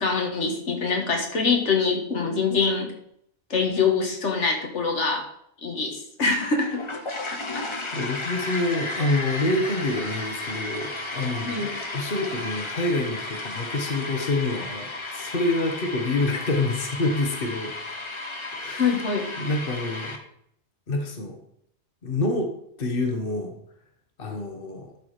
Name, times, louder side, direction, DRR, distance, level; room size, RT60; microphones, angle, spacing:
voice 1, 0.0-2.9 3.5-5.3 5.6-6.8 7.3-7.8 11.5-11.7 18.8-19.3, left 4 dB, 85° left, 2 dB, 1.9 m, -24 dB
sound 1, 6.4-20.2, left 2 dB, 25° left, 1.0 m, -34 dB
voice 2, 7.5-17.7 18.5-19.0 19.4-20.2 20.9-21.4 22.0-22.5 22.8-23.5 24.2-24.9, left 2 dB, 50° left, 4 dB, 1.5 m, -27 dB
11.5 x 4.8 x 4.9 m, 0.72 s
omnidirectional pair, 1.2 m